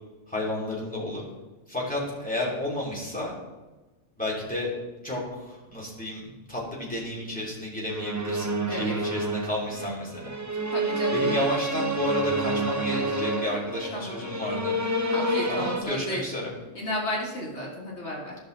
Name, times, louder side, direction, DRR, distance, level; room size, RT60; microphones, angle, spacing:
voice 1, 0.3-1.2 1.7-3.3 4.2-4.7 5.0-10.7 11.1-14.8 15.5-16.5, left 1 dB, 5° left, -6 dB, 2.8 m, -32 dB
sound 1, 7.9-15.8, right 1 dB, 20° right, 0.6 m, -28 dB
voice 2, 10.7-11.6 13.9-14.2 15.1-16.2 16.7-18.4, left 1 dB, 65° left, -3 dB, 2.0 m, -33 dB
14.0 x 5.9 x 3.9 m, 1.2 s
omnidirectional pair, 1.2 m